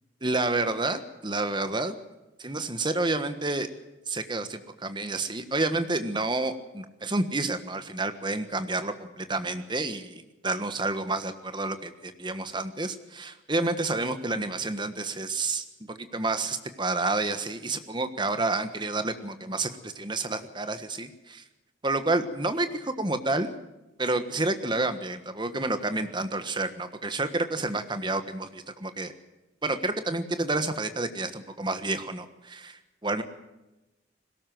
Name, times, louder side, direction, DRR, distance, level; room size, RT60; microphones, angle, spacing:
voice 1, 0.2-2.0 2.4-3.7 4.1-21.4 21.8-23.6 24.0-29.1 29.6-33.2, right 2 dB, 25° right, 9 dB, 1.4 m, -29 dB
21.0 x 18.0 x 7.7 m, 1.0 s
head